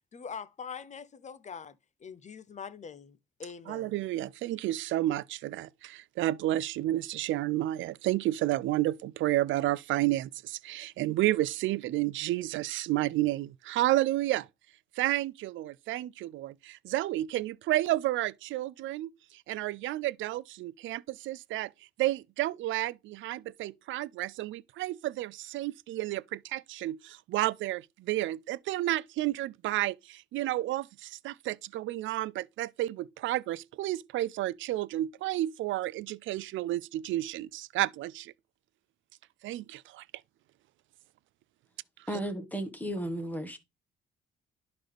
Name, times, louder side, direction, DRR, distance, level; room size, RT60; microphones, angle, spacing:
voice 1, 0.1-3.9, left 6 dB, 35° left, 0.7 m, -43 dB
voice 2, 3.7-14.5 15.0-21.7 22.0-38.3 39.4-40.0 42.1-42.2, right 15 dB, 75° right, 0.4 m, -31 dB
voice 3, 42.1-43.6, right 1 dB, 10° left, 1.5 m, -34 dB
11.5 x 3.9 x 3.4 m
cardioid pair, 90°, 20 cm